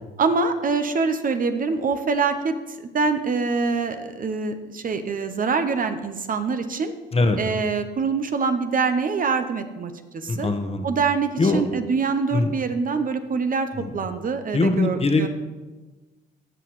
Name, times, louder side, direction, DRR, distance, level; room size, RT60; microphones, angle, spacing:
voice 1, 0.2-2.6 2.9-6.9 7.4-10.5 10.8-15.3, right 4 dB, 40° right, 8 dB, 0.8 m, -24 dB
voice 2, 10.3-10.8 11.4-11.6 12.3-12.5 13.8-13.9 14.5-15.3, left 2 dB, 30° left, 6 dB, 1.1 m, -21 dB
16.0 x 5.7 x 3.2 m, 1.2 s
supercardioid pair, 70°, 21 cm